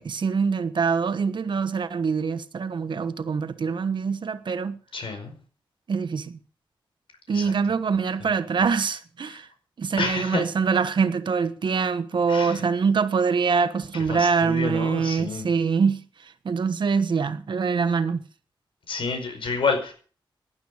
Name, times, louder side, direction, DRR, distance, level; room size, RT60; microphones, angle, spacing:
voice 1, 0.0-4.8 5.9-6.4 7.3-9.5 9.8-16.0 16.4-18.2, right 5 dB, 65° right, 1.2 m, -24 dB
voice 2, 4.9-5.3 7.3-7.5 8.2-8.3 9.3-9.4 10.0-10.4 12.3-12.6 13.9-15.5 18.9-19.9, left 4 dB, 90° left, 5.2 m, -29 dB
18.5 x 11.5 x 5.0 m
wide cardioid pair, 155°, 9 cm